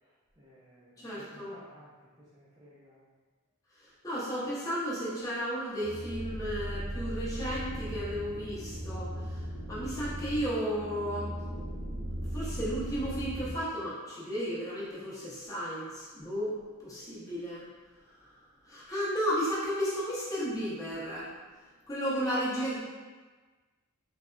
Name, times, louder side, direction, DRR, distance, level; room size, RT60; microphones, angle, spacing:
voice 1, 0.4-3.0, equal, 15° right, -9 dB, 0.5 m, -56 dB
voice 2, 1.0-1.5 4.0-9.1 9.7-11.3 12.3-16.5 16.8-17.6 18.7-21.3 21.9-22.8, equal, 15° left, -8 dB, 0.9 m, -33 dB
sound 1, 5.8-13.5, equal, 50° right, 0.9 m, -37 dB
3.4 x 3.3 x 2.5 m, 1.4 s
head